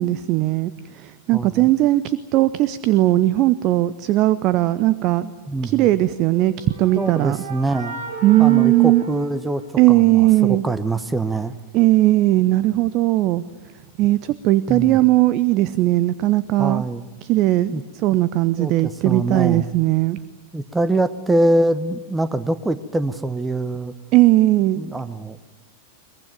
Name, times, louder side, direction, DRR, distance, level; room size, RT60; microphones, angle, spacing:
voice 1, 0.0-5.3 5.6-7.4 8.2-9.0 9.8-10.6 11.7-13.4 14.0-16.8 17.3-17.7 18.0-20.2 24.1-24.8, right 16 dB, 40° right, 16 dB, 0.7 m, -18 dB
voice 2, 1.3-1.7 5.5-5.9 7.0-8.0 8.4-9.6 9.9-11.5 14.7-15.0 16.6-17.1 17.7-17.8 18.6-19.7 20.5-23.9 24.8-25.4, right 2 dB, 10° right, 14 dB, 1.0 m, -24 dB
sound 1, 6.2-10.1, right 3 dB, 60° right, 2.8 m, -34 dB
22.5 x 21.5 x 9.2 m, 1.2 s
figure-of-eight pair, 90°, 0 cm